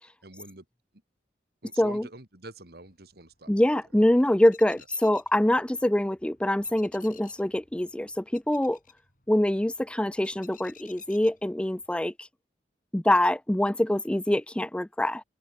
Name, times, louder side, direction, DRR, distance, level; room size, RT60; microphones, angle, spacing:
voice 1, 0.2-0.6 1.6-3.5 4.8-4.9, right 2 dB, 60° right, 3.3 m, -46 dB
sound 1, 2.9-11.9, left 8 dB, 50° left, 7.8 m, -57 dB
voice 2, 3.5-8.8 9.3-12.1 12.9-15.2, left 1 dB, 5° left, 0.4 m, -24 dB
open air
head